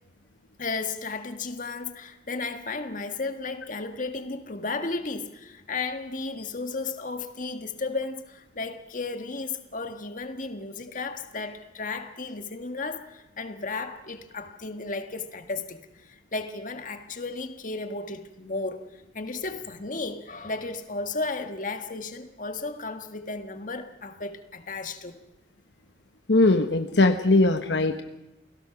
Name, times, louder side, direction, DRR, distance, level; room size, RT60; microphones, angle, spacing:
voice 1, 0.6-18.9 19.2-25.2, left 3 dB, 50° left, 1.6 m, -34 dB
voice 2, 26.3-28.0, left 2 dB, 75° left, 1.2 m, -20 dB
28.5 x 18.0 x 5.9 m
head